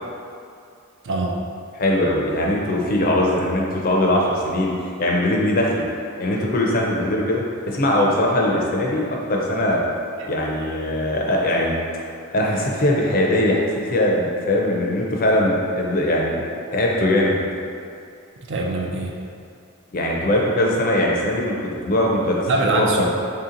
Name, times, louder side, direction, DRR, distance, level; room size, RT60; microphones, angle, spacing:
voice 1, 1.0-1.4 10.2-10.3 18.5-19.2 22.5-23.0, right 2 dB, 60° right, 0 dB, 0.4 m, -23 dB
voice 2, 1.7-4.7 5.0-5.8 6.2-9.8 10.3-11.7 12.3-16.4 16.7-17.3 19.9-22.4 22.7-23.0, left 1 dB, 45° left, -2 dB, 0.5 m, -21 dB
3.3 x 2.8 x 3.8 m, 2.4 s
head